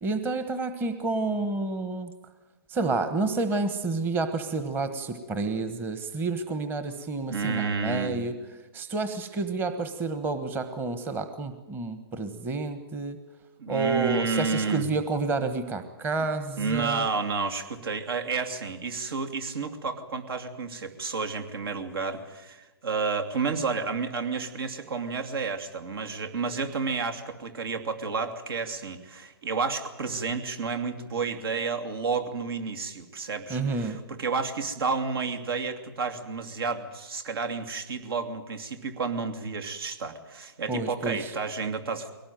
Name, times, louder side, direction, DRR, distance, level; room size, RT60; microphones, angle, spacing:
voice 1, 0.0-2.1 2.7-8.3 8.7-13.2 13.7-17.1 33.5-34.0 40.7-41.3, right 3 dB, 15° right, 9 dB, 1.3 m, -29 dB
voice 2, 7.3-8.2 13.6-14.9 16.6-42.1, right 4 dB, 70° right, 6 dB, 2.8 m, -31 dB
22.5 x 18.5 x 9.3 m, 1.1 s
hypercardioid pair, 145°, 13 cm